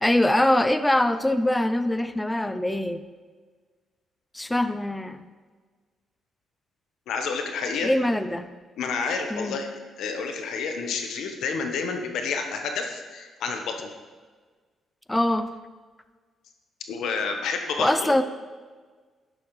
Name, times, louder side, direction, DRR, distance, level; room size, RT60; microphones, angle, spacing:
voice 1, 0.0-3.1 4.3-5.2 7.8-8.5 9.3-9.6 15.1-15.5 17.8-18.2, left 1 dB, 10° left, 11 dB, 0.5 m, -23 dB
voice 2, 7.1-7.9 8.8-9.7 10.0-13.9 16.9-18.1, left 5 dB, 85° left, 4 dB, 1.1 m, -29 dB
11.0 x 10.5 x 3.2 m, 1.5 s
cardioid pair, 120°, 0 cm